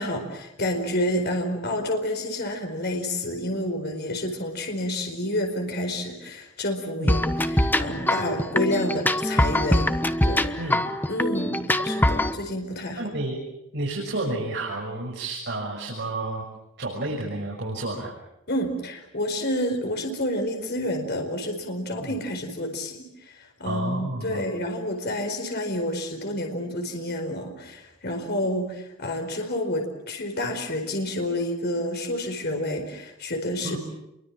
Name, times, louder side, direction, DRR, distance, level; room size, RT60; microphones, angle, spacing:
voice 1, 0.0-10.5 11.1-11.6 11.8-13.1 18.5-33.8, left 1 dB, 55° left, 4 dB, 4.7 m, -29 dB
sound 1, 7.1-12.3, left 1 dB, 10° left, 1.2 m, -23 dB
voice 2, 13.0-13.4 13.7-16.5 16.8-18.1 22.0-22.2 23.6-24.5 33.6-33.8, right 2 dB, 60° right, -2 dB, 6.4 m, -30 dB
29.0 x 23.5 x 7.6 m, 0.87 s
head